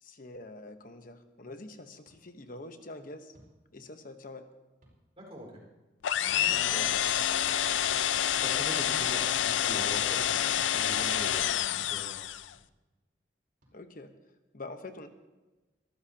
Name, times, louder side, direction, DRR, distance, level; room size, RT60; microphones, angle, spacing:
voice 1, 0.0-3.3 3.7-4.5 9.6-9.8 13.7-14.1 14.5-15.1, left 2 dB, 50° left, 8 dB, 1.1 m, -45 dB
sound 1, 2.0-2.2 3.3-3.5 4.8-5.0 6.3-6.5 8.0-8.1 9.5-9.7 11.2-11.4 12.5-12.7 13.6-13.7, equal, 50° right, 5.3 m, -60 dB
voice 2, 5.2-5.6 6.4-7.0 8.4-12.2, equal, 30° right, -1 dB, 4.6 m, -43 dB
sound 2, 6.0-12.5, left 11 dB, 85° left, 0.4 m, -28 dB
23.0 x 14.0 x 2.9 m, 1.1 s
head